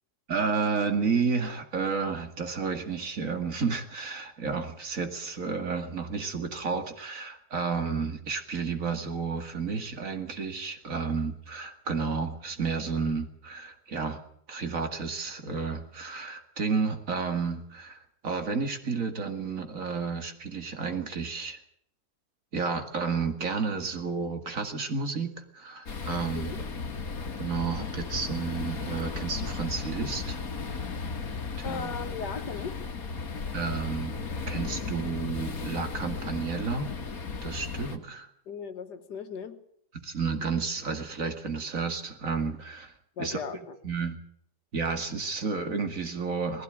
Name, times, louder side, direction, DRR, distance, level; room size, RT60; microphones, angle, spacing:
voice 1, 0.3-14.2 14.5-21.6 22.5-26.5 27.4-30.4 31.7-31.9 33.5-34.1 34.5-36.9 37.4-38.3 40.0-42.9 43.2-43.4 43.8-44.2 44.7-46.6, right 5 dB, 50° right, 2.5 m, -31 dB
sound 1, 25.9-38.0, left 4 dB, 60° left, 2.2 m, -35 dB
voice 2, 31.6-32.7 38.5-39.6 43.2-43.8, left 6 dB, 75° left, 1.9 m, -37 dB
19.5 x 16.0 x 9.0 m
omnidirectional pair, 1.8 m